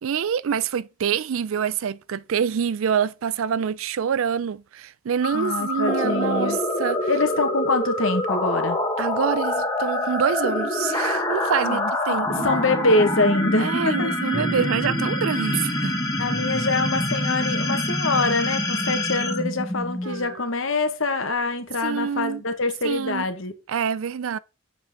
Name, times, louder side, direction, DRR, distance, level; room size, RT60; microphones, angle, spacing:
voice 1, 0.0-7.1 9.0-12.5 13.6-16.0 20.0-20.5 21.8-22.4 22.8-23.3 23.7-24.4, right 7 dB, 70° right, 0.4 m, -26 dB
sound 1, 5.2-20.3, left 1 dB, 20° left, 1.5 m, -26 dB
voice 2, 5.3-6.6 7.1-8.8 11.6-14.1 16.2-23.5, left 2 dB, 65° left, 1.4 m, -24 dB
8.1 x 7.0 x 3.6 m
head